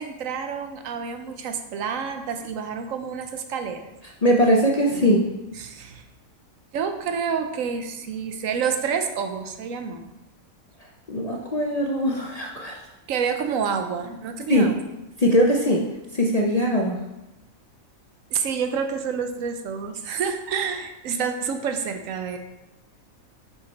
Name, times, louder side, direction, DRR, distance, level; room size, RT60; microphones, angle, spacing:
voice 1, 0.0-3.9 5.0-5.2 5.6-6.0 6.7-10.1 13.1-14.7 18.3-22.4, right 6 dB, 75° right, 6 dB, 1.1 m, -28 dB
voice 2, 4.2-5.2 11.1-12.8 14.5-14.7 15.2-17.0, equal, 40° left, -1 dB, 0.6 m, -21 dB
6.3 x 5.0 x 4.1 m, 0.98 s
omnidirectional pair, 1.4 m